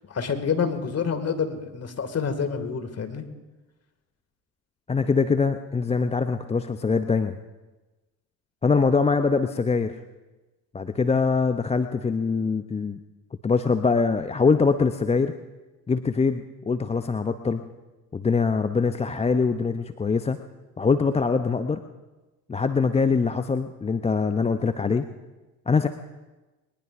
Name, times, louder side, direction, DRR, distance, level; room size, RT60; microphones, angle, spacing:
voice 1, 0.1-3.2, left 6 dB, 30° left, 7 dB, 2.2 m, -27 dB
voice 2, 4.9-7.4 8.6-10.0 10.7-13.0 13.4-15.4 15.9-17.6 18.1-20.4 20.8-21.8 22.5-25.1 25.7-25.9, left 4 dB, 15° left, 9 dB, 0.6 m, -23 dB
22.0 x 20.0 x 2.6 m, 1.1 s
hypercardioid pair, 65°, 48 cm